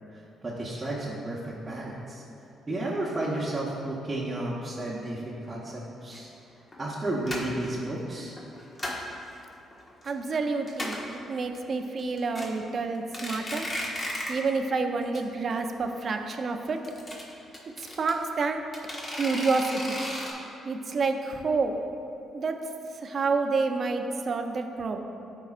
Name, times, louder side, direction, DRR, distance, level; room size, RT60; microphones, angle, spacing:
voice 1, 0.1-2.2 2.7-6.3 6.8-8.4, right 1 dB, 25° right, -7 dB, 1.0 m, -32 dB
sound 1, 6.1-6.2 6.7-6.9 7.3-7.7 8.4-9.1 9.5-10.1 10.4-10.5 10.7-11.1 11.5-11.6 12.0-12.5 12.9-14.5 14.7-14.8 15.1-15.2 15.5-15.6 16.7-18.1 18.7-20.3, left 1 dB, 30° left, 1.4 m, -35 dB
voice 2, 10.0-13.7 14.3-16.8 17.8-18.6 19.1-20.0 20.6-21.8 22.3-22.6 22.9-25.0, right 4 dB, 50° right, 5 dB, 0.6 m, -28 dB
12.0 x 4.7 x 2.4 m, 2.7 s
cardioid pair, 90°, 0 cm